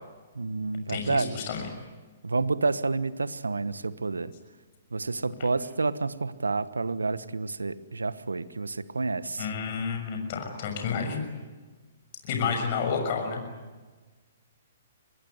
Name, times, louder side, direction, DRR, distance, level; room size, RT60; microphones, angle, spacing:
voice 1, 0.3-1.3 2.2-4.3 4.9-9.5, right 3 dB, 90° right, 15 dB, 1.2 m, -29 dB
voice 2, 0.9-1.7 9.4-11.2 12.2-13.4, left 5 dB, 50° left, 4 dB, 6.6 m, -30 dB
25.0 x 21.0 x 9.5 m, 1.3 s
hypercardioid pair, 130°, 0 cm